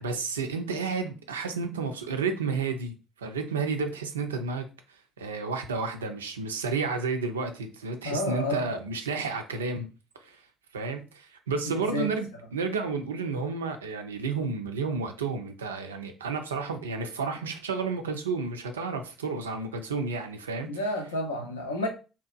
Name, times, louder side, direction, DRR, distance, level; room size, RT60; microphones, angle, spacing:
voice 1, 0.0-9.9 10.2-10.4 10.7-20.7, right 4 dB, 90° right, 0.3 m, -31 dB
voice 2, 8.0-8.8 11.6-12.1 20.6-21.9, left 1 dB, 85° left, 0.4 m, -30 dB
2.7 x 2.1 x 2.4 m
hypercardioid pair, 50°, 0 cm